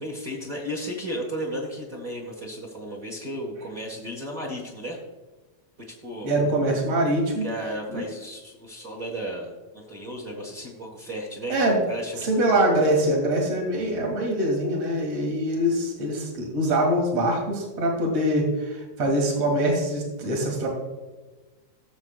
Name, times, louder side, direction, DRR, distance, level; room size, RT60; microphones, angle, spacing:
voice 1, 0.0-5.0 5.9-6.3 7.4-12.6, equal, 35° right, -1 dB, 1.5 m, -34 dB
voice 2, 6.2-7.4 7.9-8.0 11.5-11.8 12.2-20.7, right 1 dB, 55° right, 1 dB, 3.0 m, -23 dB
18.0 x 7.3 x 2.4 m, 1.2 s
omnidirectional pair, 3.4 m